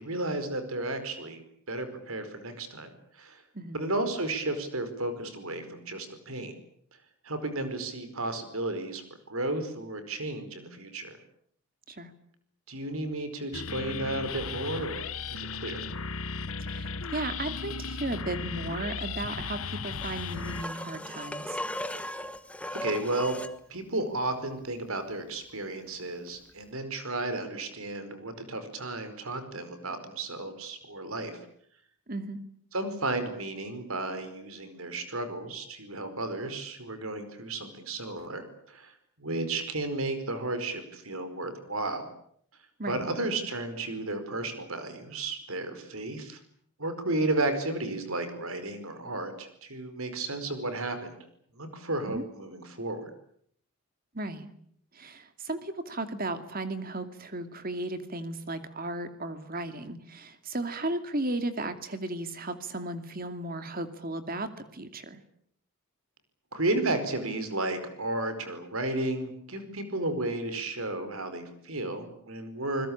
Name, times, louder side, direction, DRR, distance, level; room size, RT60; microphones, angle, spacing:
voice 1, 0.0-1.4 1.7-3.4 3.7-6.6 7.2-9.0 9.3-11.2 12.7-15.9 22.7-23.4 23.7-31.4 32.7-42.1 42.9-46.4 46.8-51.2 51.5-53.1 66.5-72.9, right 2 dB, 75° right, 10 dB, 4.8 m, -33 dB
sound 1, 13.5-20.6, left 5 dB, 75° left, 1.2 m, -36 dB
voice 2, 16.6-21.6 32.1-32.4 42.8-43.1 52.1-52.2 54.1-54.5 54.9-65.2, right 2 dB, 40° right, 9 dB, 2.5 m, -35 dB
sound 2, 20.0-23.6 26.5-26.6, left 1 dB, 5° left, 1.2 m, -37 dB
27.0 x 21.0 x 8.8 m, 0.66 s
head